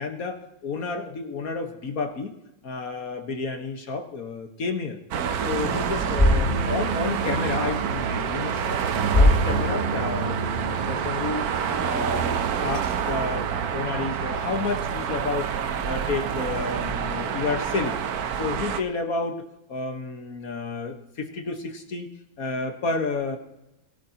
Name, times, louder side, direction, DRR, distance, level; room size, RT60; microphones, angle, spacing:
voice 1, 0.0-2.3 2.6-5.0 5.3-8.8 9.1-11.5 11.8-15.5 15.8-18.0 18.4-22.1 22.4-23.4, left 4 dB, 55° left, 5 dB, 1.7 m, -31 dB
sound 1, 5.1-18.8, right 7 dB, 60° right, 1.2 m, -27 dB
sound 2, 6.2-11.8, left 1 dB, 5° left, 5.1 m, -25 dB
20.5 x 12.5 x 2.9 m, 0.91 s
omnidirectional pair, 2.0 m